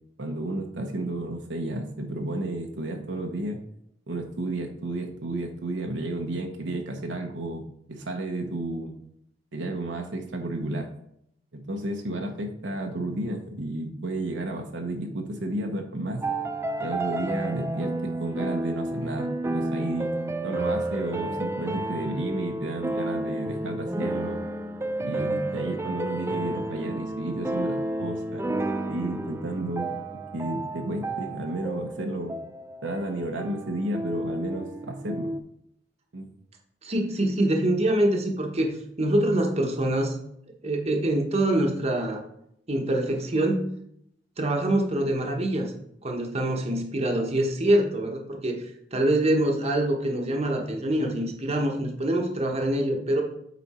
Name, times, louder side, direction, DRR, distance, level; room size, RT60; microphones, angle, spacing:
voice 1, 0.2-3.6 4.1-7.6 7.9-9.0 9.5-10.9 11.5-16.2 16.8-20.1 20.4-24.4 25.0-28.5 28.9-30.0 30.3-32.4 32.8-35.3 36.1-36.3, right 2 dB, 70° right, 2 dB, 0.9 m, -32 dB
sound 1, 16.2-35.4, right 1 dB, 15° right, 0.4 m, -31 dB
voice 2, 36.8-38.7 39.0-40.1 40.6-42.2 42.7-43.7 44.4-45.7 46.0-48.6 48.9-53.2, right 1 dB, 35° right, 2 dB, 1.1 m, -25 dB
8.3 x 4.1 x 4.3 m, 0.73 s
head